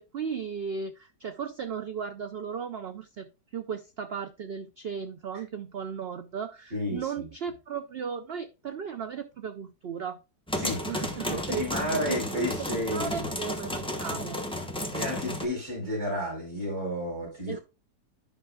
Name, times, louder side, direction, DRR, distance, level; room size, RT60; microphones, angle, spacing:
voice 1, 0.0-10.2 10.9-11.6 12.1-14.4 17.5-17.6, right 6 dB, 80° right, 9 dB, 0.5 m, -36 dB
voice 2, 6.7-7.3 10.6-13.3 14.9-17.6, left 1 dB, 45° right, -3 dB, 4.9 m, -32 dB
sound 1, 10.5-15.4, left 1 dB, 5° left, 0.8 m, -33 dB
11.0 x 5.8 x 2.3 m, 0.29 s
omnidirectional pair, 1.7 m